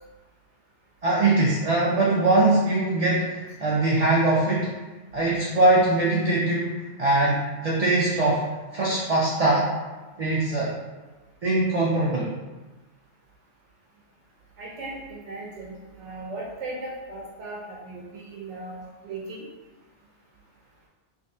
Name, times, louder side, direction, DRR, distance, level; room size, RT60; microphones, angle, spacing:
voice 1, 1.0-4.7 5.1-8.5 8.7-9.7 10.2-10.7 11.4-12.3, right 2 dB, 45° right, -5 dB, 0.5 m, -22 dB
voice 2, 14.6-19.5, right 2 dB, 80° right, -5 dB, 1.0 m, -37 dB
3.4 x 3.1 x 2.7 m, 1.2 s
omnidirectional pair, 1.2 m